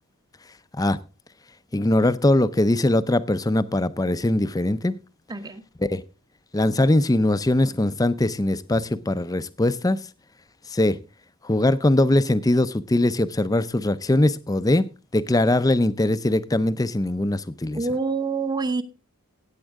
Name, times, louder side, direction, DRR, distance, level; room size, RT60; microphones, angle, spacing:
voice 1, 1.7-5.0 5.8-6.0 6.5-10.0 10.7-11.0 11.4-14.9 15.1-17.8, left 1 dB, 15° left, 0.5 m, -21 dB
voice 2, 5.3-5.7 17.7-18.8, right 4 dB, 20° right, 0.8 m, -26 dB
15.0 x 9.0 x 3.5 m
head